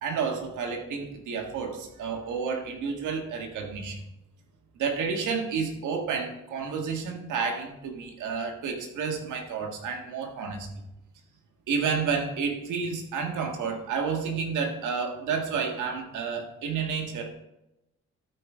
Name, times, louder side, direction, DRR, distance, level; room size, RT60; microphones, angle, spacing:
voice 1, 0.0-4.0 4.8-10.7 11.7-17.3, right 5 dB, 80° right, 3 dB, 1.7 m, -30 dB
12.5 x 5.1 x 3.6 m, 0.90 s
cardioid pair, 90°, 30 cm